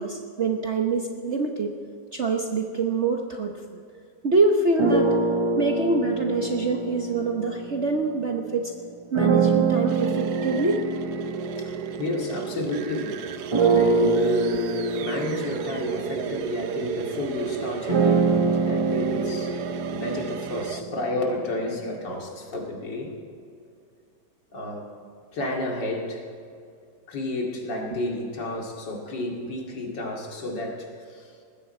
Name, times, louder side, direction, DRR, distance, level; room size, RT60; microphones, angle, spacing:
voice 1, 0.0-1.7 2.1-3.8 4.2-5.2 5.6-8.7 9.1-10.8 13.7-13.9, right 3 dB, 45° right, 2 dB, 1.1 m, -25 dB
sound 1, 4.8-8.3 9.1-12.9 13.5-21.5, right 4 dB, 25° right, 0.7 m, -25 dB
sound 2, 9.9-20.8, right 8 dB, 70° right, 1.2 m, -33 dB
voice 2, 12.0-13.2 13.7-19.5 19.9-23.1 24.5-24.9 25.3-26.2 27.1-31.3, left 1 dB, 80° left, 0 dB, 3.0 m, -31 dB
20.5 x 15.5 x 4.4 m, 2.4 s
omnidirectional pair, 1.9 m